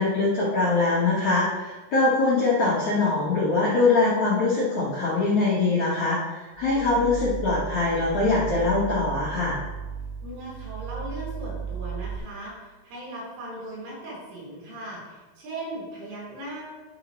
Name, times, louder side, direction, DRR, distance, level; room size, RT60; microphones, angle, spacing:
voice 1, 0.0-6.2 6.6-9.6, left 3 dB, 75° left, -8 dB, 1.7 m, -23 dB
sound 1, 6.6-12.2, right 6 dB, 90° right, 3.3 m, -35 dB
voice 2, 10.2-16.6, right 1 dB, 65° right, -6 dB, 5.0 m, -38 dB
12.5 x 5.0 x 3.2 m, 1.2 s
omnidirectional pair, 6.0 m